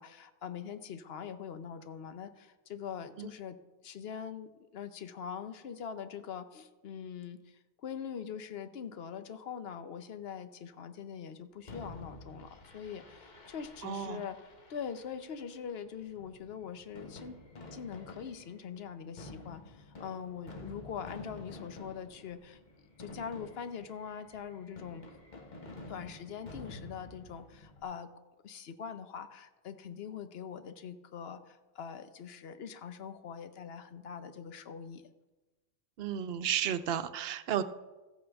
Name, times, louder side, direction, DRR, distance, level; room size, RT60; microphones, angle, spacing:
voice 1, 0.0-3.6 3.8-17.4 17.7-22.6 23.0-25.0 25.9-28.1 28.4-35.0, left 7 dB, 70° left, 10 dB, 1.0 m, -43 dB
Fireworks, 11.7-27.8, left 2 dB, 45° left, 1.3 m, -50 dB
voice 2, 13.8-14.2 36.0-37.6, right 9 dB, 75° right, 11 dB, 0.8 m, -33 dB
14.5 x 8.6 x 3.5 m, 1.1 s
omnidirectional pair, 1.1 m